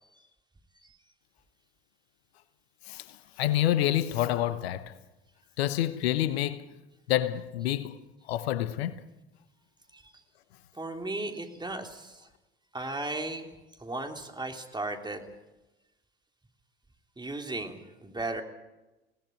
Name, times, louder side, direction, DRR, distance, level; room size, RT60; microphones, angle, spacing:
voice 1, 3.4-4.9 5.6-6.7 7.1-8.0 8.3-9.0, left 13 dB, 75° left, 1.1 m, -27 dB
voice 2, 10.7-12.3 12.7-13.5 13.8-15.3 17.2-18.4, right 2 dB, 15° right, 3.4 m, -36 dB
20.0 x 17.5 x 9.4 m
hypercardioid pair, 65°, 31 cm